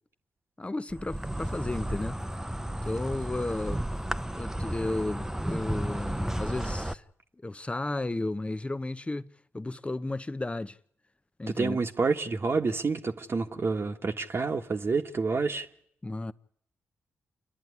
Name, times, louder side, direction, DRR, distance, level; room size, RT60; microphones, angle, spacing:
voice 1, 0.6-2.2 2.8-7.0 7.4-10.8 11.4-11.8 16.0-16.3, left 2 dB, 20° left, 0.9 m, -33 dB
Insect, 0.9-6.9, right 1 dB, 10° right, 0.9 m, -33 dB
voice 2, 11.6-15.7, right 4 dB, 45° right, 1.3 m, -28 dB
28.5 x 10.5 x 9.6 m
supercardioid pair, 45°, 6 cm